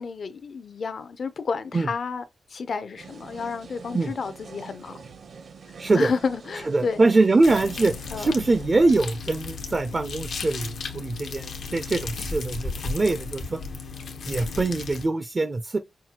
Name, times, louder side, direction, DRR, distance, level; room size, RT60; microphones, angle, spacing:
voice 1, 0.0-2.2 2.5-5.0 5.9-7.0 8.1-8.3, left 5 dB, 50° left, 0.5 m, -30 dB
sound 1, 3.0-8.7, right 5 dB, 60° right, 0.7 m, -45 dB
voice 2, 5.8-6.1 6.7-13.6 14.3-15.8, right 3 dB, 30° right, 0.4 m, -23 dB
sound 2, 7.4-15.1, left 4 dB, 90° left, 0.9 m, -35 dB
5.7 x 2.3 x 2.8 m
wide cardioid pair, 155°, 0 cm